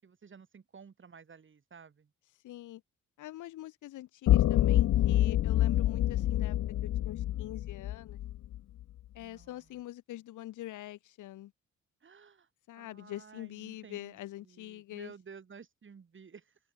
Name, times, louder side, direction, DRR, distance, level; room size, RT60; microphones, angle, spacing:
voice 1, 0.0-2.1 9.2-9.8 12.0-12.5 12.7-16.6, right 6 dB, 40° right, 6.2 m, -53 dB
voice 2, 2.4-2.8 3.2-6.6 6.8-8.2 9.1-11.5 12.7-15.1, left 15 dB, 80° left, 1.9 m, -44 dB
sound 1, 4.3-8.6, left 13 dB, 60° left, 0.6 m, -27 dB
open air
cardioid pair, 90°, 30 cm